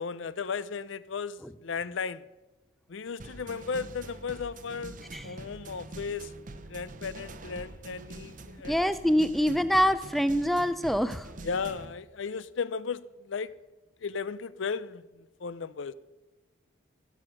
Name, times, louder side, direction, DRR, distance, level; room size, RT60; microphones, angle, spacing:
voice 1, 0.0-2.2 2.9-6.3 6.7-8.8 11.4-13.5 14.0-15.9, left 5 dB, 70° left, 17 dB, 0.5 m, -35 dB
sound 1, 3.2-11.9, right 2 dB, 40° right, 0.7 m, -45 dB
voice 2, 8.7-11.3, equal, ahead, 13 dB, 0.4 m, -25 dB
16.0 x 7.8 x 6.3 m, 1.1 s
head